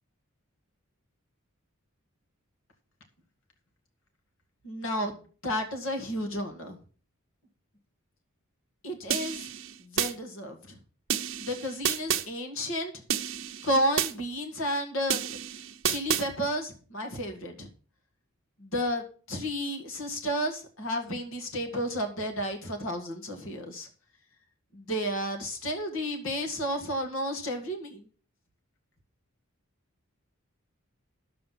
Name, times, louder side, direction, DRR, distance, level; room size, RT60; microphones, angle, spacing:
voice 1, 4.6-5.1 5.4-6.8 8.8-9.5 9.8-10.8 11.4-12.9 13.6-15.2 15.8-17.7 18.6-23.9 24.7-28.1, equal, 65° left, 3 dB, 2.0 m, -32 dB
sound 1, 9.1-10.1 11.1-12.3 13.1-14.1 15.1-16.3, right 9 dB, 60° right, 0.8 m, -30 dB
10.5 x 7.5 x 5.9 m, 0.40 s
head